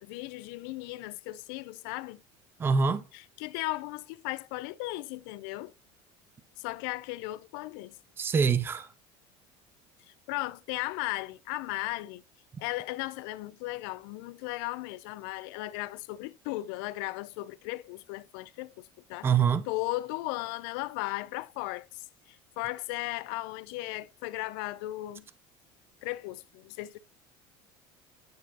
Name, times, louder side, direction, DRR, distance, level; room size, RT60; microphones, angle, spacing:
voice 1, 0.0-2.2 3.1-5.7 6.6-8.0 10.1-12.2 12.6-19.3 19.7-25.2 26.0-27.0, left 19 dB, 80° left, 0.4 m, -36 dB
voice 2, 2.6-3.0 8.2-8.9 19.2-19.6, right 6 dB, 20° right, 0.5 m, -24 dB
9.3 x 4.5 x 2.8 m
cardioid pair, 145°, 12 cm